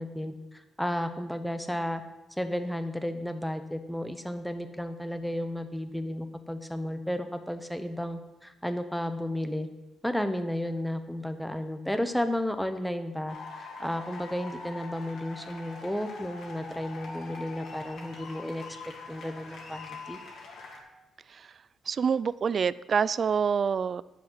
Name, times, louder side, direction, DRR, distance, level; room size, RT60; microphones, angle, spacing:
voice 1, 0.0-2.0 2.4-9.7 10.0-18.6 19.1-20.2, left 1 dB, ahead, 8 dB, 1.0 m, -33 dB
sound 1, 13.3-20.8, left 3 dB, 75° left, 2.3 m, -43 dB
voice 2, 21.9-24.0, right 6 dB, 50° right, 18 dB, 0.3 m, -26 dB
10.5 x 7.4 x 5.8 m, 1.0 s
cardioid pair, 95°, 0 cm